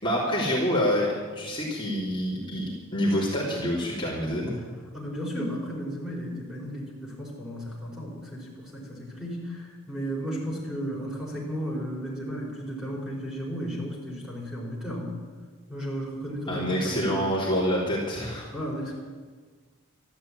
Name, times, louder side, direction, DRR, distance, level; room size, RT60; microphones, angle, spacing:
voice 1, 0.0-1.1 1.4-2.7 2.9-4.6 16.5-18.5, equal, 25° left, -6 dB, 3.4 m, -26 dB
voice 2, 4.9-15.1 15.7-17.4 18.5-18.9, equal, 5° right, -4 dB, 4.8 m, -34 dB
13.5 x 12.0 x 8.8 m, 1.5 s
head